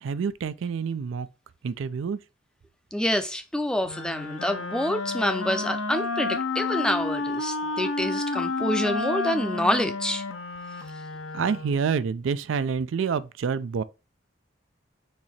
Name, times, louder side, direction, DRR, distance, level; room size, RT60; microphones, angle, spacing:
voice 1, 0.0-1.3 1.6-2.2 11.3-13.8, right 6 dB, 75° right, 0.4 m, -27 dB
voice 2, 2.9-10.2, left 1 dB, 5° left, 0.4 m, -27 dB
Wind instrument woodwind instrument, 3.8-11.9, left 3 dB, 80° left, 0.6 m, -30 dB
4.6 x 2.8 x 4.2 m
head